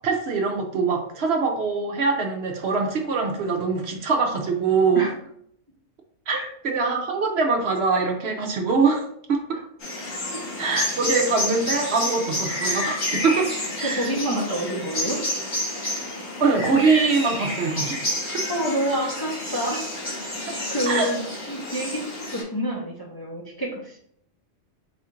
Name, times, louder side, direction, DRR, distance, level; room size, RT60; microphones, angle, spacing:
voice 1, 0.0-5.1 6.3-6.4 6.6-9.6 10.6-13.5 13.8-14.1 16.4-18.0 20.5-20.6 20.9-21.1, right 4 dB, 60° right, 2 dB, 0.9 m, -23 dB
sound 1, 9.8-22.4, left 1 dB, 85° left, 1.9 m, -30 dB
voice 2, 13.8-15.2 18.5-19.9 20.7-21.2 21.5-24.0, equal, 25° left, -3 dB, 0.6 m, -28 dB
4.2 x 2.4 x 4.3 m, 0.68 s
omnidirectional pair, 1.3 m